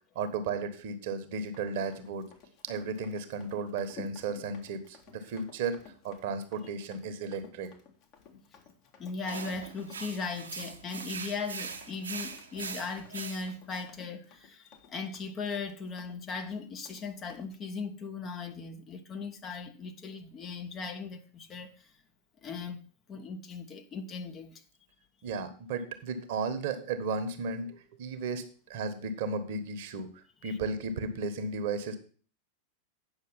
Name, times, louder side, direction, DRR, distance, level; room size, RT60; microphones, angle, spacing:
voice 1, 0.1-2.3 2.6-5.8 6.0-7.7 25.2-28.4 28.7-30.1 30.4-32.0, right 4 dB, 50° right, 1.4 m, -34 dB
Run, 1.4-17.5, left 6 dB, 40° left, 1.8 m, -54 dB
voice 2, 9.0-21.9 22.4-24.6 30.4-30.6, left 4 dB, 25° left, 1.1 m, -38 dB
sound 1, 9.3-13.8, right 5 dB, 70° right, 1.3 m, -41 dB
9.1 x 6.5 x 5.7 m
figure-of-eight pair, 90°, 0 cm